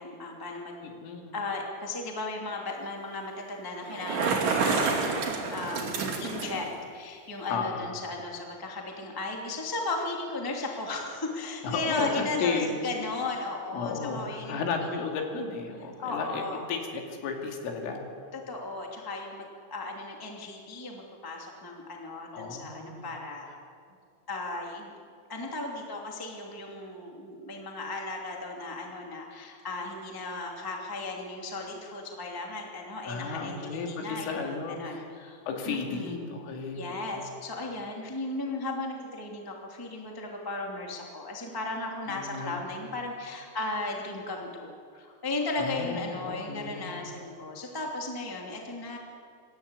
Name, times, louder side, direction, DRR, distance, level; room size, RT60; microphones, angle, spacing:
voice 1, 0.0-0.8 1.3-15.2 15.8-16.7 18.3-23.4 24.3-24.9 25.3-35.4 35.6-36.3 36.7-49.0, left 2 dB, 10° left, 0 dB, 1.1 m, -36 dB
voice 2, 0.8-1.3 7.5-7.9 11.6-12.7 13.7-16.4 16.7-18.0 22.3-23.1 33.1-35.0 35.5-37.3 42.1-42.7 45.6-47.1, left 5 dB, 80° left, 1 dB, 4.9 m, -33 dB
Bicycle, 3.8-6.7, right 4 dB, 45° right, 4.0 m, -28 dB
26.5 x 13.5 x 8.3 m, 2.3 s
omnidirectional pair, 5.7 m